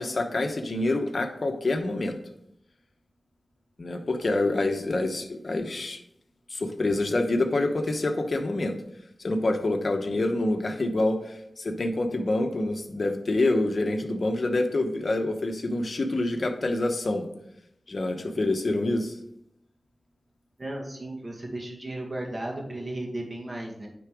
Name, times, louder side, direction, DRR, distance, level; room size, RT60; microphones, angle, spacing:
voice 1, 0.0-2.2 3.8-6.0 6.5-8.8 9.2-17.3 17.9-19.2, left 2 dB, 65° left, 5 dB, 1.0 m, -26 dB
voice 2, 20.6-23.9, right 1 dB, 30° right, -1 dB, 2.0 m, -35 dB
9.6 x 3.9 x 4.9 m, 0.79 s
cardioid pair, 55°, 0 cm